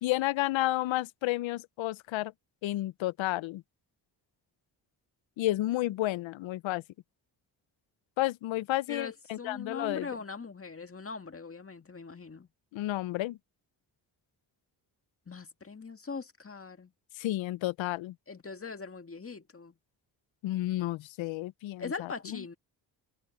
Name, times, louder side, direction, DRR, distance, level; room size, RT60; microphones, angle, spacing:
voice 1, 0.0-2.3 2.6-3.6 5.4-6.8 8.2-10.1 12.7-13.4 17.2-18.1 20.4-22.4, left 16 dB, 85° left, 0.7 m, -31 dB
voice 2, 8.9-12.5 15.3-16.9 18.3-19.7 21.8-22.5, left 4 dB, 30° left, 2.0 m, -41 dB
cardioid pair, 75°, 45 cm